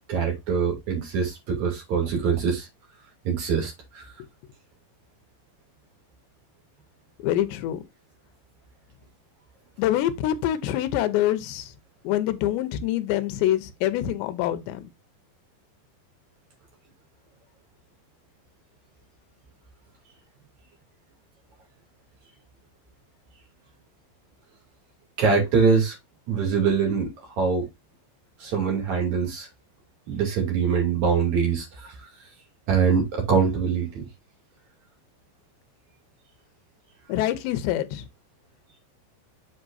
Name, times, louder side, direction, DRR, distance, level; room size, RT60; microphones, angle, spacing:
voice 1, 0.1-2.7 3.2-4.0 25.2-25.9 26.3-27.7 28.4-29.5 30.1-31.9 32.7-34.0, right 6 dB, 45° right, 3.3 m, -23 dB
voice 2, 7.2-7.8 9.8-11.7 12.0-14.8 37.1-38.0, left 12 dB, 80° left, 2.9 m, -25 dB
8.0 x 5.9 x 2.5 m
omnidirectional pair, 5.3 m